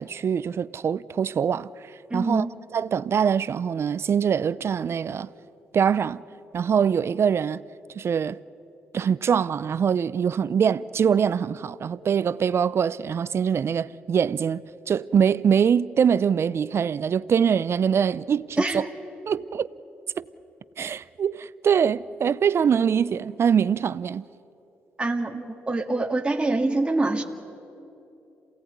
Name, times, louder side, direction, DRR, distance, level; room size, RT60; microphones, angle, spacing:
voice 1, 0.0-1.7 2.1-2.4 2.7-5.3 5.7-6.2 6.5-7.6 8.0-8.4 8.9-18.8 19.3-19.7 20.2-20.3 20.8-24.2, right 7 dB, 55° right, 0.6 m, -23 dB
voice 2, 2.1-2.5 18.6-18.9 25.0-27.2, right 2 dB, 20° right, 1.9 m, -25 dB
27.5 x 17.0 x 9.5 m
supercardioid pair, 50°, 5 cm